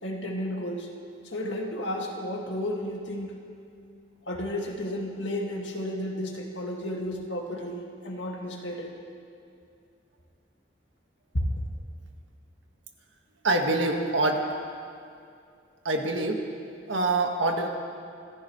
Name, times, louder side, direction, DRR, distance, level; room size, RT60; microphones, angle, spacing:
voice 1, 0.0-0.9 1.2-3.4 4.3-9.0 11.3-11.5, left 1 dB, 80° left, 0 dB, 2.0 m, -32 dB
voice 2, 13.4-14.5 15.8-16.4 16.9-17.7, right 2 dB, 90° right, 2 dB, 1.7 m, -25 dB
27.0 x 15.0 x 3.2 m, 2.4 s
head